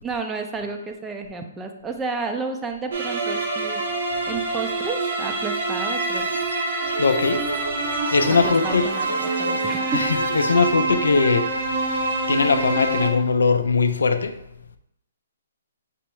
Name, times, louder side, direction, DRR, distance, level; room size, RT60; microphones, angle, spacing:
voice 1, 0.0-3.8 4.3-6.4 8.4-10.1, right 4 dB, 15° right, 4 dB, 0.4 m, -31 dB
sound 1, 2.9-13.1, right 2 dB, 70° right, 0.9 m, -26 dB
sound 2, 5.8-10.7, right 3 dB, 90° right, 0.4 m, -33 dB
voice 2, 7.0-7.5 7.9-8.9 9.9-14.4, left 4 dB, 80° left, 9 dB, 0.4 m, -21 dB
5.4 x 2.0 x 4.5 m, 0.82 s
hypercardioid pair, 140°, 0 cm